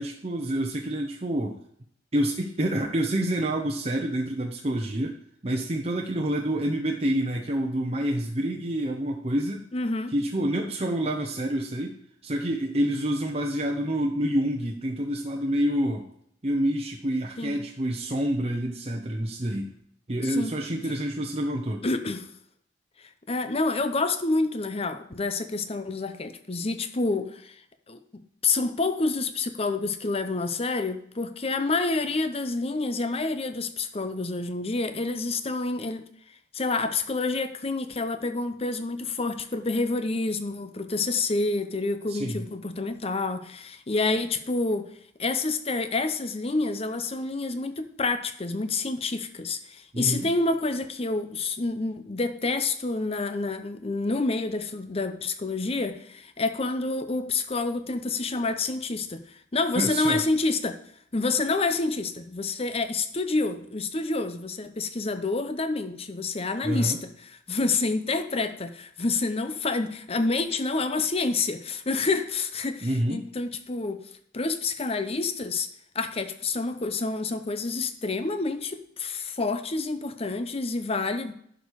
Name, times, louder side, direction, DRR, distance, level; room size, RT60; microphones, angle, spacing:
voice 1, 0.0-1.6 2.1-9.6 10.1-12.0 12.2-16.1 16.4-19.7 20.1-21.8 42.1-42.5 49.9-50.3 59.8-60.2 66.6-67.0 72.8-73.2, right 1 dB, 35° right, 0 dB, 0.9 m, -27 dB
voice 2, 9.7-10.1 17.4-17.6 20.2-20.5 21.8-22.3 23.3-27.5 27.9-28.0 28.4-36.0 36.5-44.9 45.2-59.2 59.5-60.8 61.1-74.0 74.3-75.7 75.9-81.3, left 3 dB, 35° left, 9 dB, 0.7 m, -28 dB
11.0 x 5.2 x 4.8 m, 0.67 s
head